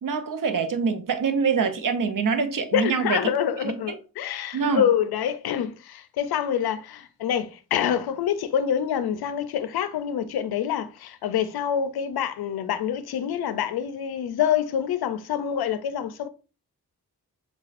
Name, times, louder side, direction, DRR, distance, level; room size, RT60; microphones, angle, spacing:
voice 1, 0.0-3.3 3.6-4.0 4.5-4.9, right 5 dB, 60° right, 0.8 m, -25 dB
voice 2, 2.7-16.3, left 9 dB, 85° left, 0.5 m, -26 dB
6.4 x 2.3 x 2.5 m
cardioid pair, 50°, 37 cm